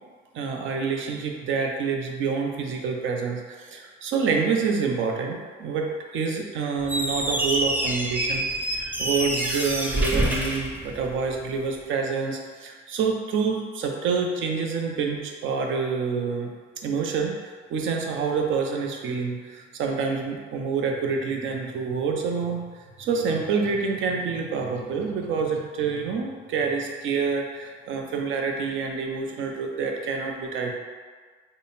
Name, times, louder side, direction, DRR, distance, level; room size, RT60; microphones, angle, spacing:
voice 1, 0.3-16.5 16.8-17.4 17.7-30.8, right 5 dB, 75° right, 2 dB, 0.6 m, -27 dB
Squeak, 6.8-11.5, right 1 dB, 10° right, 0.6 m, -27 dB
3.7 x 2.0 x 3.9 m, 1.5 s
cardioid pair, 90°, 20 cm